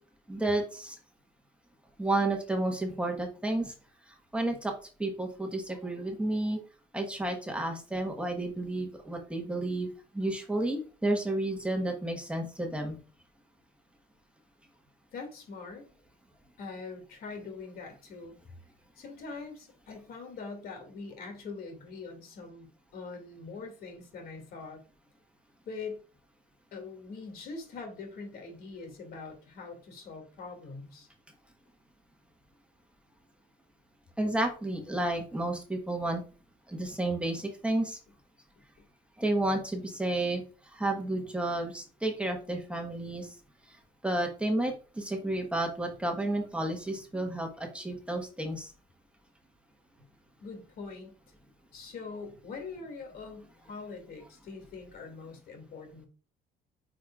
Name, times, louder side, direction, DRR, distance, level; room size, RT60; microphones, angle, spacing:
voice 1, 0.3-0.9 2.0-3.7 4.3-4.7 5.0-6.6 6.9-9.9 10.1-13.0 34.2-36.2 36.7-38.0 39.2-40.4 40.8-43.3 44.0-48.7, right 1 dB, 5° right, 2 dB, 1.4 m, -31 dB
voice 2, 15.1-15.8 16.6-18.4 19.0-24.8 25.7-26.0 26.7-31.1 50.4-51.1 51.7-56.1, left 4 dB, 65° left, 4 dB, 2.5 m, -43 dB
9.1 x 5.1 x 2.5 m, 0.38 s
cardioid pair, 110°, 17 cm